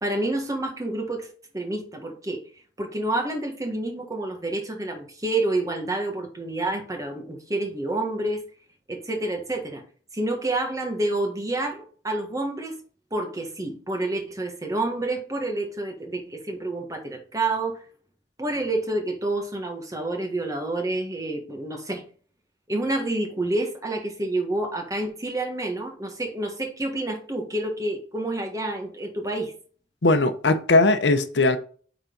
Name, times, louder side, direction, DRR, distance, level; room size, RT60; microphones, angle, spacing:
voice 1, 0.0-1.3 1.5-8.4 8.9-9.8 10.1-12.8 13.1-17.8 18.4-22.0 22.7-29.5, right 2 dB, 20° right, 1.6 m, -28 dB
voice 2, 30.0-31.6, left 2 dB, 85° left, 0.8 m, -19 dB
8.9 x 4.1 x 4.0 m
head